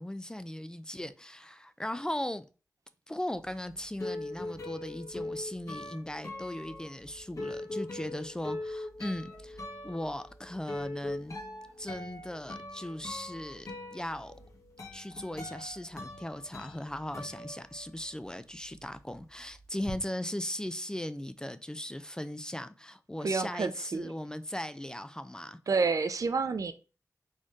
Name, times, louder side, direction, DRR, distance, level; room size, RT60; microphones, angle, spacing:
voice 1, 0.0-2.5 3.1-11.4 11.8-14.3 14.9-25.6, left 1 dB, 10° left, 0.4 m, -38 dB
sound 1, 3.4-18.2 18.5-20.0, left 2 dB, 55° left, 1.7 m, -42 dB
voice 2, 23.2-24.1 25.7-26.7, right 4 dB, 60° right, 0.5 m, -29 dB
4.3 x 3.1 x 3.6 m
wide cardioid pair, 75°, 6 cm